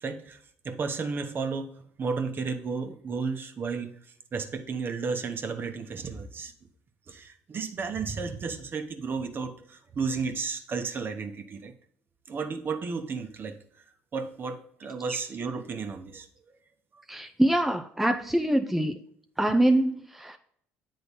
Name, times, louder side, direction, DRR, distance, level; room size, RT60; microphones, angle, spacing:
voice 1, 0.0-0.4 0.6-1.7 2.0-3.9 4.3-6.5 7.1-11.7 12.3-13.6 14.1-16.3, right 5 dB, 45° right, 1.1 m, -33 dB
voice 2, 17.1-19.0 19.4-20.4, right 1 dB, 5° right, 0.6 m, -24 dB
8.2 x 3.9 x 5.3 m
supercardioid pair, 70°, 5 cm